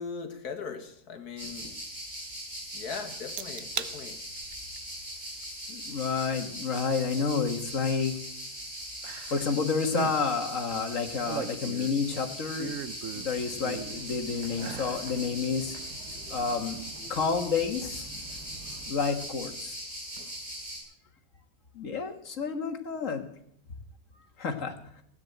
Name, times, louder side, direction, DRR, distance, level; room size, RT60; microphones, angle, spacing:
voice 1, 0.0-1.7 2.7-4.2, left 5 dB, 70° left, 7 dB, 2.2 m, -39 dB
sound 1, 1.4-20.8, equal, 25° right, 7.0 m, -40 dB
sound 2, 3.4-3.9 4.4-4.8 6.3-6.4 9.0-9.6 9.8-10.2 11.0-12.0 12.6-14.1 14.5-15.0 15.5-15.6, right 8 dB, 60° right, 1.1 m, -37 dB
voice 2, 5.7-8.2 9.3-12.7 13.1-15.8 16.3-16.8 17.1-18.1 18.9-19.8 21.8-23.3 24.4-25.0, left 5 dB, 55° left, 6 dB, 1.9 m, -30 dB
sound 3, 13.2-18.9, right 2 dB, 85° right, 4.6 m, -48 dB
16.5 x 9.7 x 7.9 m, 0.69 s
omnidirectional pair, 1.7 m